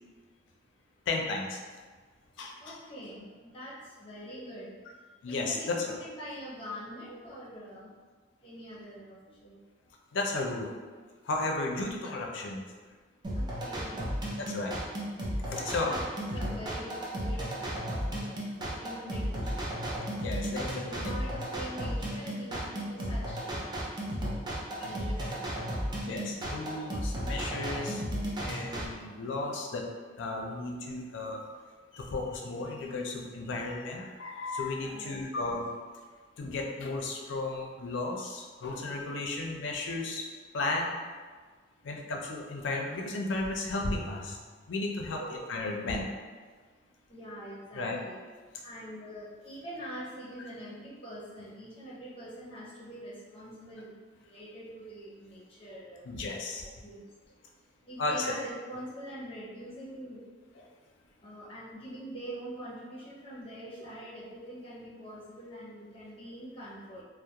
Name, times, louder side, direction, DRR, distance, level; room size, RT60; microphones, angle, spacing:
voice 1, 1.1-1.6 2.4-2.8 5.2-5.9 10.1-10.7 11.2-12.6 14.4-14.8 15.4-16.0 20.2-21.0 24.8-24.9 26.1-28.0 28.4-29.9 30.2-31.4 31.9-35.7 36.4-40.3 40.5-41.0 41.8-44.4 44.7-46.1 47.7-48.0 56.0-56.6 58.0-58.3 60.6-60.7, left 2 dB, 80° left, 0 dB, 0.4 m, -34 dB
voice 2, 2.6-4.8 5.3-7.9 8.4-9.2 9.4-9.6 13.3-14.1 15.4-16.0 16.3-19.7 20.9-23.8 24.8-26.0 34.9-35.5 45.2-45.4 47.1-48.2 48.6-53.9 54.2-56.1 56.8-57.0 57.9-60.2 61.2-67.0, equal, 30° left, -7 dB, 0.6 m, -44 dB
sound 1, 13.2-28.9, equal, 25° right, 0.4 m, -34 dB
2.3 x 2.0 x 2.8 m, 1.5 s
head